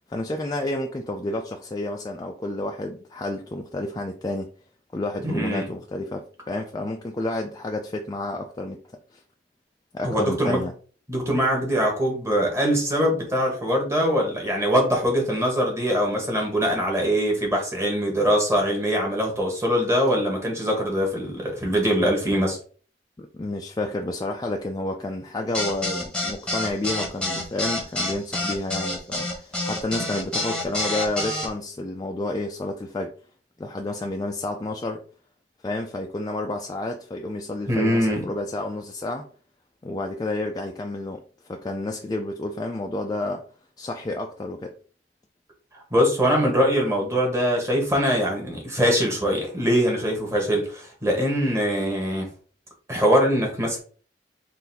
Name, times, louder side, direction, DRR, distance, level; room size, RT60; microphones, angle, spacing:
voice 1, 0.1-4.5 4.9-8.8 9.1-9.2 9.9-10.7 23.2-33.1 33.6-35.0 35.6-39.3 39.8-43.4 43.8-44.7, left 2 dB, 20° left, 0.4 m, -30 dB
voice 2, 5.2-5.7 10.0-10.6 11.1-22.6 37.7-38.2 45.9-52.3 52.9-53.8, equal, 15° right, 1.4 m, -22 dB
sound 1, 25.5-31.5, left 1 dB, 5° left, 1.0 m, -27 dB
3.9 x 2.6 x 4.1 m
head